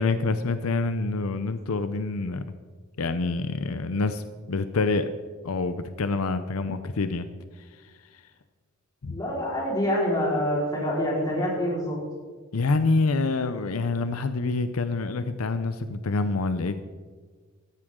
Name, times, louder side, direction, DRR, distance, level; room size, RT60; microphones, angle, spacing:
voice 1, 0.0-2.4 3.0-4.2 4.5-5.1 5.4-7.3 9.0-9.1 12.5-16.8, left 3 dB, 85° left, 10 dB, 0.7 m, -26 dB
voice 2, 9.0-12.0, equal, 20° left, -5 dB, 4.4 m, -26 dB
15.0 x 13.5 x 3.8 m, 1.5 s
head